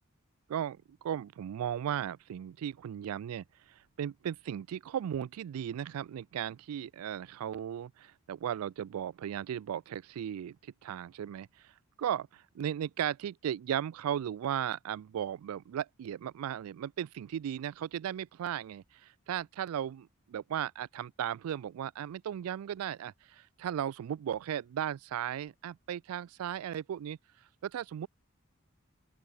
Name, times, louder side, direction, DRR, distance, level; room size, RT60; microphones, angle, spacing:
voice 1, 0.5-11.7 12.0-27.2 27.6-28.1, right 9 dB, 90° right, 0.3 m, -36 dB
open air
head